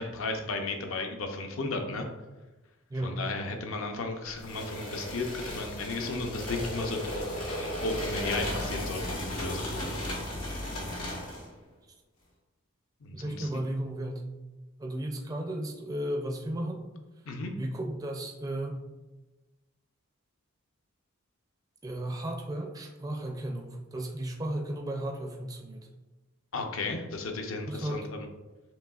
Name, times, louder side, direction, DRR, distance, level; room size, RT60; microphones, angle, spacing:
voice 1, 0.0-2.1 3.0-7.3 7.5-9.9 13.0-13.5 17.3-17.5 26.5-28.3, left 3 dB, 65° left, 4 dB, 0.6 m, -34 dB
sound 1, 4.4-11.5, left 1 dB, 85° left, 1.5 m, -35 dB
voice 2, 13.1-14.3 14.8-16.8 17.6-18.8 21.8-25.9 27.7-28.1, right 1 dB, 15° right, 1 dB, 0.4 m, -34 dB
7.3 x 3.0 x 2.3 m, 1.1 s
head